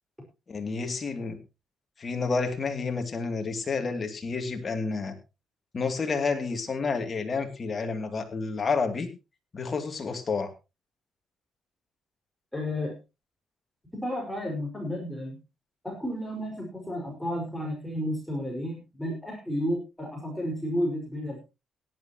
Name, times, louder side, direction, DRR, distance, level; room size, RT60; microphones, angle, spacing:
voice 1, 0.5-1.4 2.0-5.2 5.7-9.1 9.5-10.5, left 4 dB, 40° left, 6 dB, 2.7 m, -30 dB
voice 2, 12.5-12.9 13.9-15.4 15.8-21.4, equal, 5° left, 0 dB, 5.2 m, -32 dB
17.5 x 11.5 x 3.0 m, 0.27 s
cardioid pair, 90°, 0 cm